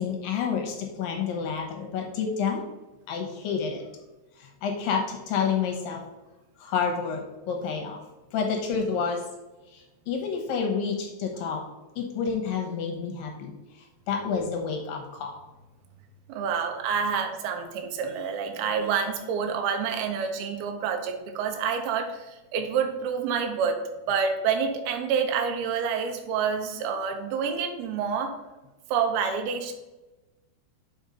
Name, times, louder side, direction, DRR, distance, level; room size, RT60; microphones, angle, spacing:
voice 1, 0.0-2.7 3.1-3.8 4.4-6.0 6.6-8.0 8.3-9.3 9.7-11.6 12.0-15.4, left 6 dB, 70° left, 1 dB, 2.3 m, -29 dB
voice 2, 16.3-23.8 24.1-28.3 28.9-29.7, right 6 dB, 75° right, 5 dB, 2.5 m, -28 dB
8.0 x 4.4 x 5.3 m, 1.1 s
omnidirectional pair, 5.1 m